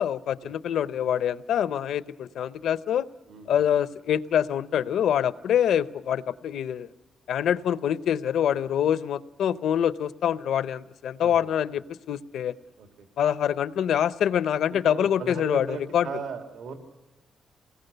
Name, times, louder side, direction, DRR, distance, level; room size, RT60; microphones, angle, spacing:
voice 1, 0.0-3.0 3.5-6.9 7.3-12.5 13.2-16.1, left 9 dB, 85° left, 16 dB, 0.7 m, -25 dB
voice 2, 3.3-3.6 11.2-11.5 12.8-13.1 14.7-16.7, right 5 dB, 85° right, 5 dB, 2.4 m, -37 dB
26.5 x 20.0 x 6.8 m, 1.1 s
wide cardioid pair, 145°, 0 cm